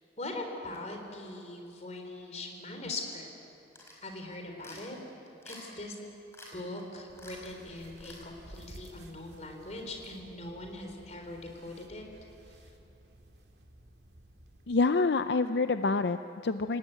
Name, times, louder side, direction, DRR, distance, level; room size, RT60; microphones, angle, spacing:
voice 1, 0.2-3.3 4.0-5.0 5.4-6.0 6.5-12.0 12.5-12.7, left 2 dB, 40° left, 3 dB, 4.0 m, -41 dB
sound 1, 3.8-4.1 4.6-4.9 5.4-5.8 6.3-6.5 6.8-6.9 7.2-7.5 8.0-8.2, left 1 dB, 15° left, 5.2 m, -49 dB
sound 2, 7.1-14.8, right 1 dB, 70° right, 2.1 m, -54 dB
voice 2, 14.7-16.8, left 3 dB, 70° left, 10 dB, 0.6 m, -27 dB
28.0 x 18.5 x 9.3 m, 2.9 s
head